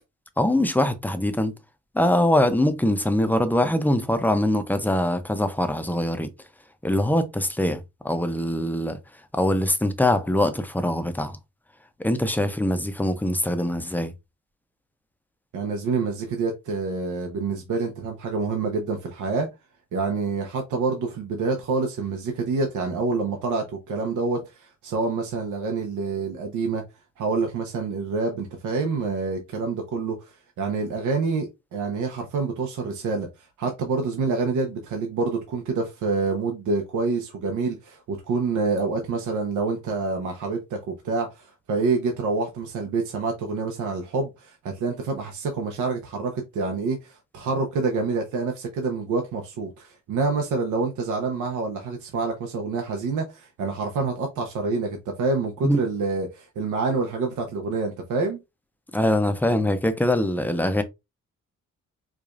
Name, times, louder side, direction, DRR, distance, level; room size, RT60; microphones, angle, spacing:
voice 1, 0.4-1.5 1.9-6.3 6.8-9.0 9.3-11.4 12.0-14.1 55.6-55.8 58.9-60.8, left 1 dB, 5° left, 0.5 m, -23 dB
voice 2, 15.5-19.5 19.9-26.8 27.2-58.4, right 4 dB, 80° right, 0.8 m, -27 dB
4.8 x 2.4 x 2.4 m
cardioid pair, 100°, 30 cm